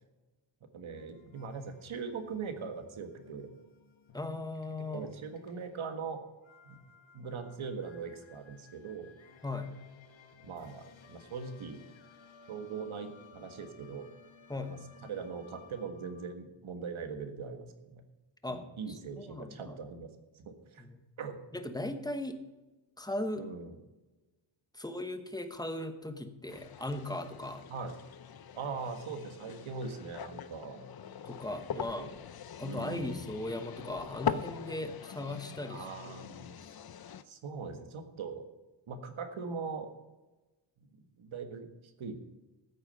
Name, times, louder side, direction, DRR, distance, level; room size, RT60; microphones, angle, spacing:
voice 1, 0.7-3.6 4.9-6.2 6.6-6.8 7.1-9.1 10.4-11.8 12.5-14.1 14.7-14.8 15.0-18.0 18.5-20.1 20.3-20.9 21.2-21.4 23.4-23.8 27.7-28.0 28.5-30.8 31.8-32.1 32.6-33.3 35.7-36.6 37.2-38.4 38.9-39.9 40.9-42.3, right 5 dB, 75° right, 6 dB, 1.7 m, -41 dB
sound 1, 0.9-16.4, left 6 dB, 65° left, 1.3 m, -59 dB
voice 2, 4.1-5.1 9.4-9.8 14.5-14.8 18.4-19.8 20.8-21.0 21.5-22.4 23.0-23.5 24.7-27.7 31.2-32.1 32.6-36.2, left 2 dB, 10° left, 8 dB, 1.1 m, -38 dB
sound 2, 26.5-37.2, left 7 dB, 50° left, 0.6 m, -42 dB
14.5 x 8.6 x 5.5 m, 1.1 s
wide cardioid pair, 135°, 49 cm